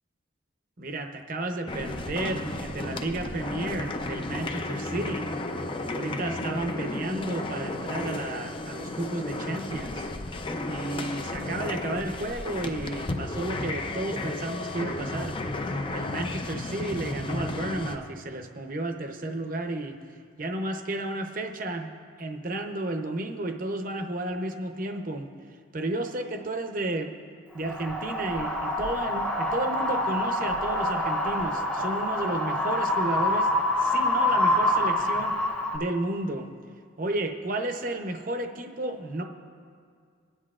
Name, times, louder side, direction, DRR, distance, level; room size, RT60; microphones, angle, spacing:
voice 1, 0.8-5.3 5.9-10.1 10.7-15.4 15.9-20.0 20.4-21.9 22.2-25.3 25.7-27.1 27.5-33.5 33.8-35.4 35.7-36.5 37.0-39.2, right 2 dB, 45° right, 5 dB, 0.8 m, -32 dB
sound 1, 1.7-18.0, left 2 dB, 25° left, 0.5 m, -33 dB
Wind, 27.6-35.8, left 1 dB, 5° left, 0.9 m, -26 dB
20.5 x 9.8 x 2.4 m, 2.1 s
head